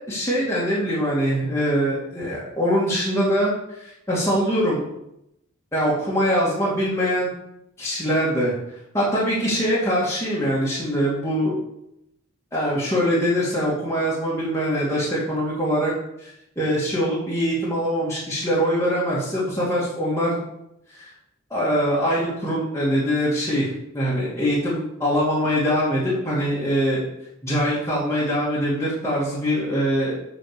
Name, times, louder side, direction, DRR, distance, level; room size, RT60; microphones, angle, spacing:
voice 1, 0.1-4.8 5.7-7.3 7.8-8.5 8.9-11.6 12.5-15.9 16.2-16.3 16.6-20.4 21.0-21.1 21.5-27.0 27.4-30.1, equal, 15° left, -7 dB, 2.5 m, -23 dB
7.9 x 6.3 x 6.9 m, 0.81 s
head